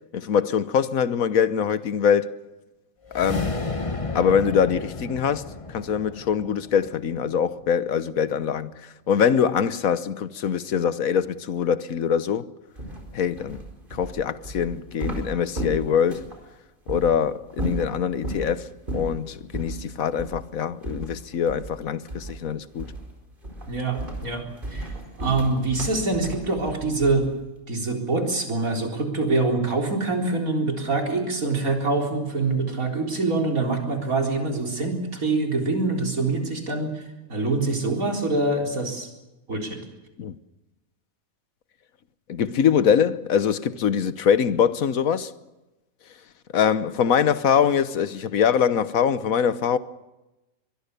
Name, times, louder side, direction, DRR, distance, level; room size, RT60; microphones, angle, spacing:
voice 1, 0.1-2.3 3.1-3.5 4.1-12.5 13.1-13.6 13.9-16.3 16.9-18.7 18.9-22.9 39.5-39.7 40.2-40.3 42.3-45.3 46.5-49.8, left 7 dB, 85° left, 1.5 m, -23 dB
sound 1, 3.1-7.5, left 3 dB, 25° left, 1.3 m, -32 dB
sound 2, 12.8-16.4 16.9-17.1 17.5-18.5 18.9-19.2 19.5-19.8 20.2-20.4 20.8-21.8 22.1-22.4 22.8-23.1 23.4-27.4, right 1 dB, 40° right, 4.8 m, -33 dB
voice 2, 23.7-24.4 24.7-27.3 27.7-37.0 37.3-39.1 39.5-39.8, right 3 dB, 85° right, 4.5 m, -25 dB
23.5 x 22.0 x 6.8 m
omnidirectional pair, 1.4 m